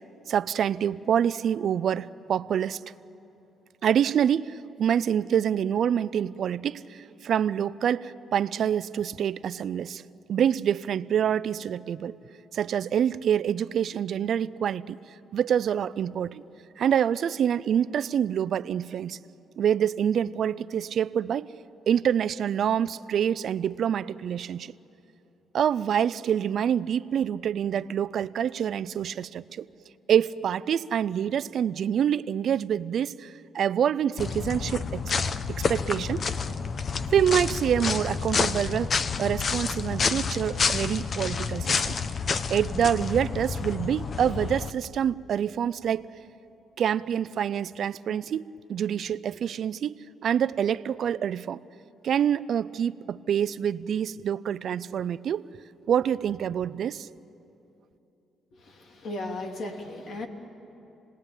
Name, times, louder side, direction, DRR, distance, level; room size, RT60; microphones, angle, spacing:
voice 1, 0.3-2.8 3.8-10.0 10.3-12.1 12.5-15.0 15.3-16.4 16.8-19.2 19.6-21.5 21.9-24.7 25.5-29.7 30.1-35.1 35.5-36.3 37.1-41.9 42.5-46.1 46.8-49.9 50.2-51.6 52.0-55.5 55.9-57.1, right 9 dB, 65° right, 17 dB, 0.5 m, -26 dB
sound 1, 34.2-44.7, left 5 dB, 45° left, 0.9 m, -29 dB
voice 2, 58.5-60.3, left 2 dB, 65° left, 2 dB, 3.1 m, -36 dB
29.5 x 19.5 x 9.0 m, 2.9 s
cardioid pair, 90°, 0 cm